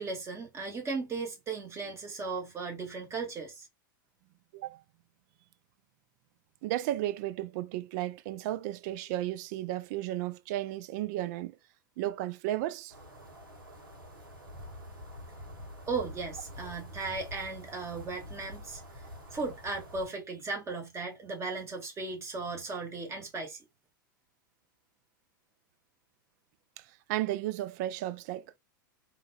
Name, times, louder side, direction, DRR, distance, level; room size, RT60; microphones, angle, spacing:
voice 1, 0.0-3.7 15.9-23.6, right 4 dB, 25° right, 1.7 m, -36 dB
voice 2, 6.6-11.6 12.0-12.9 26.8-28.6, right 14 dB, 55° right, 0.4 m, -34 dB
sound 1, 12.9-20.1, left 1 dB, 85° right, 1.4 m, -47 dB
3.8 x 2.9 x 2.2 m
hypercardioid pair, 95°, 11 cm